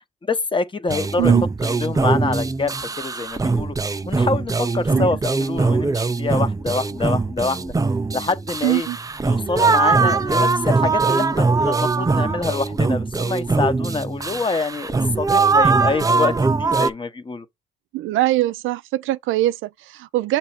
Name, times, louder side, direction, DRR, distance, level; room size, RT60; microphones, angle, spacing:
voice 1, 0.2-1.3 1.6-3.8 4.1-7.7 8.1-8.9 9.2-16.3 16.6-17.5, left 3 dB, 25° left, 0.9 m, -26 dB
sound 1, 0.9-16.9, right 4 dB, 15° right, 0.5 m, -21 dB
voice 2, 8.6-9.0 17.9-20.4, right 16 dB, 85° right, 0.4 m, -22 dB
6.9 x 3.1 x 4.3 m
cardioid pair, 90°, 20 cm